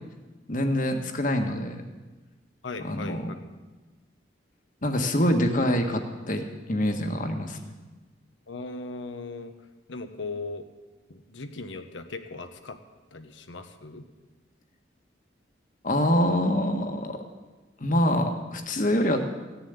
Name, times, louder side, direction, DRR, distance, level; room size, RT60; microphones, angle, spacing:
voice 1, 0.5-1.8 2.8-3.3 4.8-7.6 15.8-17.2 17.8-19.2, left 1 dB, 45° left, 5 dB, 1.5 m, -25 dB
voice 2, 2.6-3.2 8.5-9.5 9.9-10.7 11.1-12.8 13.1-14.0, left 3 dB, 90° left, 7 dB, 1.1 m, -38 dB
15.5 x 7.2 x 9.5 m, 1.2 s
head